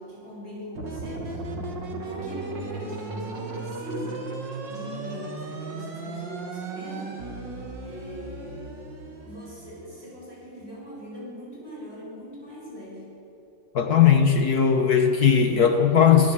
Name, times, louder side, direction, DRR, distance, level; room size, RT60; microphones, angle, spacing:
voice 1, 0.0-1.5 2.0-4.3 4.7-7.2 7.8-8.8 9.2-13.2, equal, 35° right, -4 dB, 7.9 m, -40 dB
sound 1, 0.7-10.3, right 3 dB, 80° right, 2.8 m, -36 dB
voice 2, 13.7-16.3, left 7 dB, 60° left, 6 dB, 1.6 m, -18 dB
25.5 x 17.5 x 8.1 m, 2.8 s
omnidirectional pair, 2.0 m